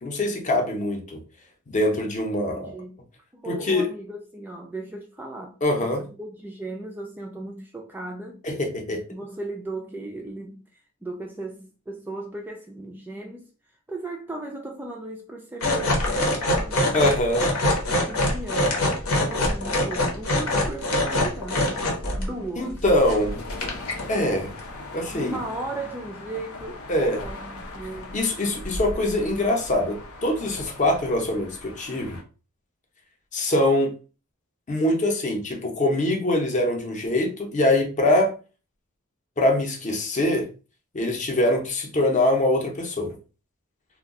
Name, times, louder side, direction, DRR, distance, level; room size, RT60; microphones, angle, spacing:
voice 1, 0.0-1.2 1.7-2.7 3.5-3.9 5.6-6.0 8.4-9.0 16.9-17.5 22.6-23.4 24.1-24.5 24.9-25.4 26.9-27.2 28.1-32.2 33.3-33.9 34.7-38.3 39.4-40.5 40.9-43.1, left 1 dB, 35° left, 0.6 m, -23 dB
voice 2, 2.5-3.0 3.3-8.4 8.9-13.5 13.9-17.2 17.9-18.8 19.1-21.9 22.2-22.8 25.1-28.2, right 2 dB, 10° right, 0.3 m, -37 dB
sound 1, 15.6-22.3 22.7-23.2 23.5-24.1 24.6-24.7, left 1 dB, 85° left, 1.0 m, -24 dB
sound 2, 22.9-32.2, left 1 dB, 70° left, 0.6 m, -39 dB
2.2 x 2.2 x 3.6 m
head